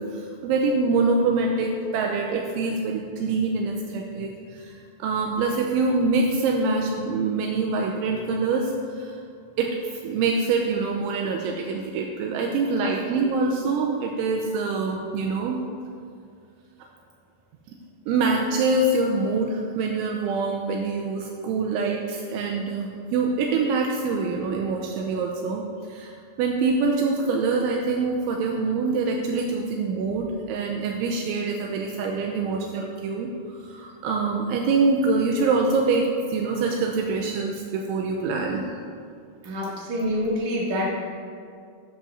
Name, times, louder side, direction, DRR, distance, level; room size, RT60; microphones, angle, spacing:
voice 1, 0.0-9.2 9.6-15.6 18.1-25.6 25.9-26.1 26.4-38.7, right 3 dB, 80° right, 1 dB, 2.9 m, -25 dB
voice 2, 39.4-40.9, equal, 50° right, -5 dB, 2.7 m, -26 dB
15.0 x 12.0 x 2.6 m, 2.3 s
omnidirectional pair, 5.7 m